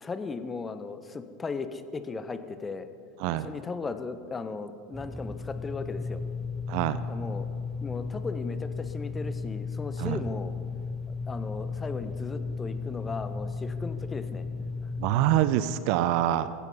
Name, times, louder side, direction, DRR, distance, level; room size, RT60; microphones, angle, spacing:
voice 1, 0.0-2.9 3.3-6.2 7.1-7.5 7.8-10.5 11.3-14.4, left 4 dB, 20° left, 11 dB, 1.1 m, -36 dB
sound 1, 4.9-15.5, left 4 dB, 5° right, 0.7 m, -35 dB
voice 2, 6.7-7.0 10.0-10.2 15.0-16.5, right 13 dB, 55° right, 14 dB, 0.7 m, -25 dB
15.5 x 14.5 x 5.6 m, 2.4 s
figure-of-eight pair, 80°, 0 cm